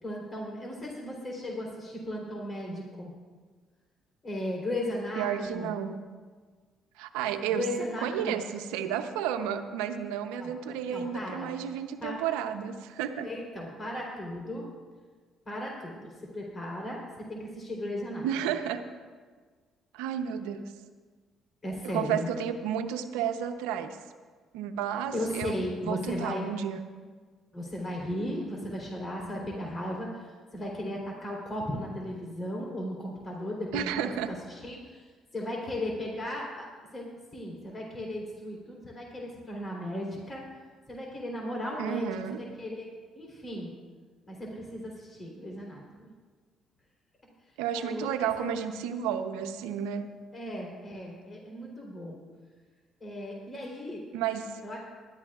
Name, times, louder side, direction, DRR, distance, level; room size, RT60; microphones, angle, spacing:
voice 1, 0.0-3.1 4.2-5.7 7.5-8.4 10.3-10.5 10.9-11.5 12.0-12.2 13.2-14.7 15.5-18.3 21.6-22.3 25.1-26.5 27.5-35.1 35.3-36.7 36.9-40.4 40.9-42.9 43.1-43.7 44.3-46.1 47.7-48.5 50.3-52.2 53.0-54.0 54.6-54.8, left 1 dB, 35° left, -2 dB, 3.5 m, -36 dB
voice 2, 5.2-6.0 7.0-13.3 18.2-18.9 19.9-20.7 21.8-24.0 24.5-26.8 33.7-34.3 41.8-42.4 47.6-50.1 54.1-54.5, right 8 dB, 90° right, 8 dB, 0.7 m, -32 dB
20.5 x 12.5 x 2.4 m, 1.5 s
supercardioid pair, 70°, 0 cm